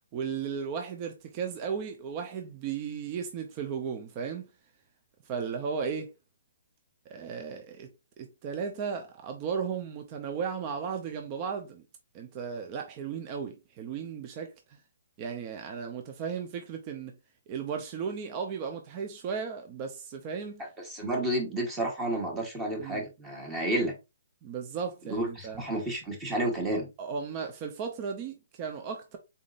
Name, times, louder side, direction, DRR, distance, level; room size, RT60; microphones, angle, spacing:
voice 1, 0.1-4.5 5.3-6.1 7.1-7.9 8.2-11.8 12.1-14.8 15.2-17.1 17.5-20.6 22.8-23.0 24.4-25.6 26.7-29.2, right 6 dB, 30° right, 0.6 m, -35 dB
voice 2, 20.8-23.9 25.0-26.9, right 1 dB, 15° right, 1.3 m, -31 dB
4.0 x 3.7 x 2.4 m
hypercardioid pair, 150°, 0 cm